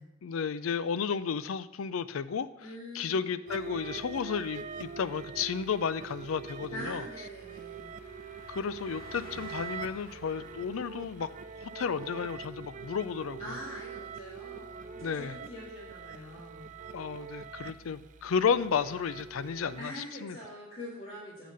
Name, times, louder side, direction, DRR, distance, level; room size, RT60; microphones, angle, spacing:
voice 1, 0.2-7.0 8.5-11.3 11.6-13.5 15.0-15.4 16.9-20.4, left 6 dB, 85° left, 15 dB, 0.4 m, -33 dB
voice 2, 2.6-3.2 6.7-7.9 13.4-16.7 19.8-21.5, equal, 30° left, -8 dB, 2.0 m, -44 dB
Car passing by, 3.4-15.2 15.5-15.7, left 3 dB, 45° left, 1.0 m, -56 dB
sound 1, 3.5-19.8, right 6 dB, 40° right, 0.4 m, -44 dB
9.4 x 4.1 x 6.7 m, 0.94 s
head